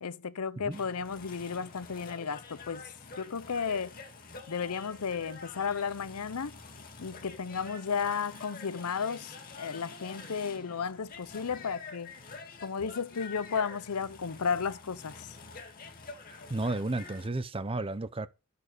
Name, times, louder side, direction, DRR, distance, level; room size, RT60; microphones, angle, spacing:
voice 1, 0.0-2.8 3.2-4.0 4.5-6.5 7.0-12.1 12.6-15.3, left 6 dB, 85° left, 0.6 m, -34 dB
sound 1, 0.7-17.3, left 4 dB, 40° left, 2.2 m, -47 dB
voice 2, 16.5-18.3, right 2 dB, 25° right, 0.8 m, -32 dB
11.0 x 7.0 x 6.6 m
head